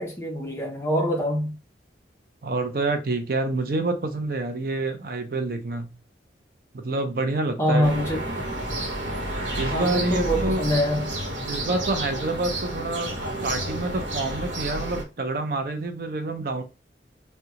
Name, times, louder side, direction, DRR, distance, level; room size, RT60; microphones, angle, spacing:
voice 1, 0.0-1.6 7.6-8.3 9.7-11.1, equal, 15° left, 0.6 m, -25 dB
voice 2, 2.4-5.9 6.7-7.9 9.6-10.6 11.4-16.6, right 2 dB, 50° right, 0.5 m, -27 dB
sound 1, 7.8-15.0, right 1 dB, 85° right, 0.9 m, -30 dB
3.6 x 2.2 x 2.8 m
head